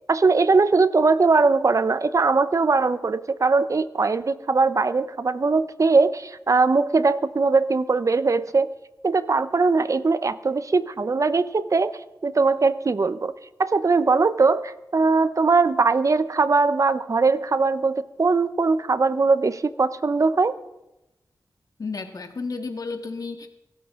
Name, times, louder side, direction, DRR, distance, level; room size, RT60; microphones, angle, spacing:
voice 1, 0.1-8.7 9.0-13.3 13.6-20.6, right 4 dB, 50° right, 14 dB, 0.7 m, -20 dB
voice 2, 21.8-23.5, left 4 dB, 60° left, 6 dB, 1.8 m, -32 dB
22.5 x 12.5 x 3.7 m, 0.93 s
cardioid pair, 60°, 7 cm